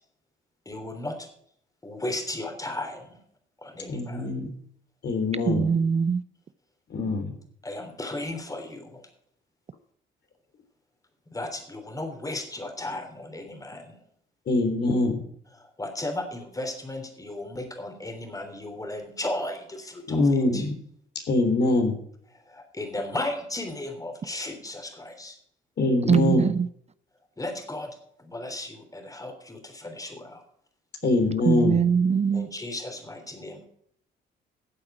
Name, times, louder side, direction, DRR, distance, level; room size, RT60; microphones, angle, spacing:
voice 1, 0.6-1.3 1.8-3.2 3.6-4.3 7.6-9.1 11.3-14.1 15.6-20.2 20.5-20.6 22.4-25.4 27.4-30.4 32.3-33.7, left 1 dB, 15° left, 3.3 m, -35 dB
voice 2, 3.9-4.5 5.0-5.7 6.9-7.4 14.5-15.2 20.1-20.7 21.3-22.0 25.8-26.4 31.0-31.8, left 2 dB, 55° left, 3.4 m, -23 dB
voice 3, 5.5-6.2 26.1-26.7 31.4-32.5, right 6 dB, 35° right, 0.5 m, -22 dB
13.5 x 7.9 x 4.8 m
cardioid pair, 90°, 20 cm